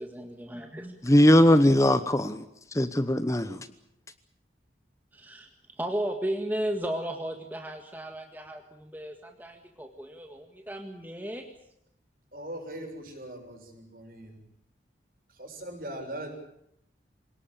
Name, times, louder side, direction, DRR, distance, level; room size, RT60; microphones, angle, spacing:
voice 1, 0.0-0.9 5.1-11.5, right 1 dB, 10° right, 1.8 m, -35 dB
voice 2, 1.0-2.4 2.7-3.7, left 1 dB, 15° left, 0.9 m, -20 dB
voice 3, 12.3-14.4 15.4-16.3, right 1 dB, 50° right, 6.8 m, -40 dB
27.0 x 19.0 x 8.8 m
head